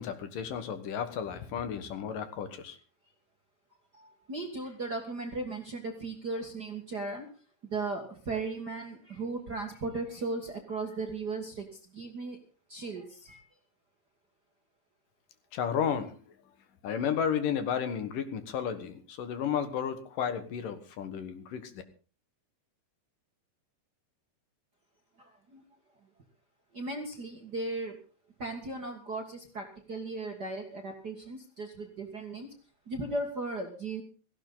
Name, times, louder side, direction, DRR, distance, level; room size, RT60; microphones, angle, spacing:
voice 1, 0.0-2.8 15.5-16.1 16.8-21.7, left 8 dB, 70° left, 10 dB, 3.0 m, -33 dB
voice 2, 3.9-7.3 7.7-12.4 12.7-13.4 25.2-25.6 26.7-28.0 28.4-32.5 32.9-34.0, right 3 dB, 40° right, 3 dB, 1.6 m, -37 dB
17.5 x 15.5 x 4.0 m, 0.38 s
omnidirectional pair, 4.2 m